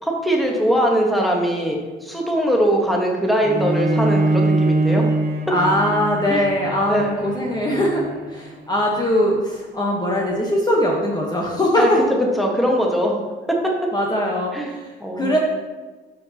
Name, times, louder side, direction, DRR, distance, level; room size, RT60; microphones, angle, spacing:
voice 1, 0.0-5.0 6.3-6.4 6.9-7.2 11.8-11.9 12.4-13.1 14.5-14.7 15.0-15.4, equal, ahead, -1 dB, 1.4 m, -21 dB
Bowed string instrument, 3.4-8.6, right 2 dB, 50° right, 1.1 m, -23 dB
voice 2, 5.5-8.0 8.3-12.0 13.9-15.4, left 1 dB, 20° left, -2 dB, 1.1 m, -21 dB
11.5 x 4.5 x 2.9 m, 1.3 s
cardioid pair, 90°, 20 cm